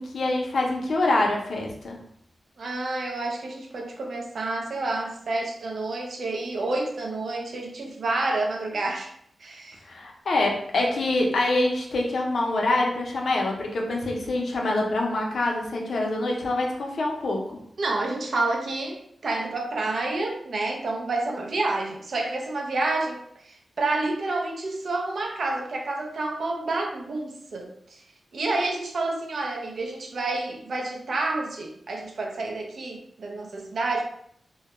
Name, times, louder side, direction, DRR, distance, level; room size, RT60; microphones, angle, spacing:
voice 1, 0.0-2.0 9.9-17.4, left 2 dB, 75° left, 0 dB, 0.5 m, -25 dB
voice 2, 2.6-9.1 9.4-9.8 17.8-28.0 28.3-34.0, right 2 dB, 70° right, 1 dB, 0.5 m, -29 dB
2.2 x 2.0 x 2.9 m, 0.68 s
cardioid pair, 65°, 0 cm